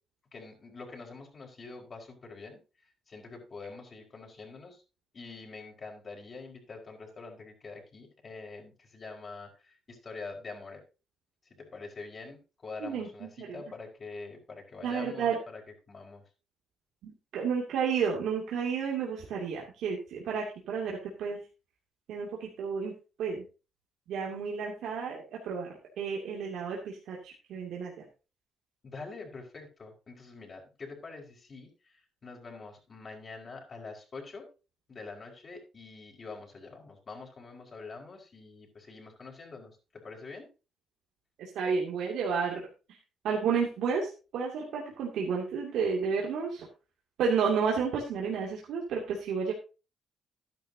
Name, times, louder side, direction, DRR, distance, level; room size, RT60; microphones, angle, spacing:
voice 1, 0.3-2.6 3.1-4.8 5.1-10.8 11.5-15.6 15.9-16.2 28.8-34.5 34.9-40.5, left 4 dB, 40° left, 1 dB, 5.1 m, -45 dB
voice 2, 14.8-15.4 17.0-21.4 22.1-22.9 23.2-23.4 24.1-27.9 41.4-42.6 43.2-46.7 47.2-49.5, right 6 dB, 80° right, -2 dB, 2.5 m, -31 dB
12.5 x 11.0 x 2.8 m, 0.32 s
cardioid pair, 90°, 0 cm